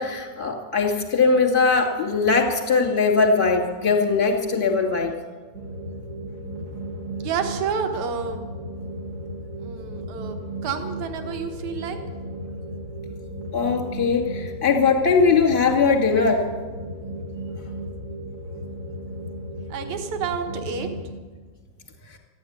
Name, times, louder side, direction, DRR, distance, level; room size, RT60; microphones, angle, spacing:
voice 1, 0.0-5.1 13.5-16.5, left 4 dB, 20° left, 1 dB, 2.3 m, -20 dB
sound 1, 5.5-21.1, right 1 dB, 40° right, 1.8 m, -35 dB
voice 2, 7.2-8.5 9.6-12.0 19.7-20.9, right 6 dB, 75° right, 5 dB, 2.7 m, -29 dB
14.5 x 10.5 x 9.5 m, 1.4 s
omnidirectional pair, 3.4 m